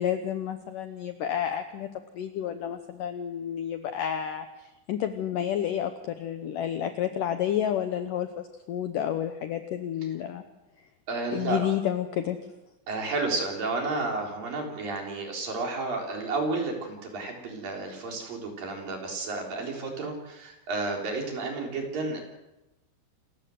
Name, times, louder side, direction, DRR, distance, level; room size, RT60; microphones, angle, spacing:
voice 1, 0.0-1.9 2.1-10.4 11.3-12.4, left 10 dB, 90° left, 8 dB, 1.8 m, -30 dB
voice 2, 11.1-11.7 12.9-22.2, right 3 dB, 50° right, 1 dB, 5.2 m, -31 dB
27.5 x 14.5 x 7.8 m, 0.97 s
omnidirectional pair, 5.2 m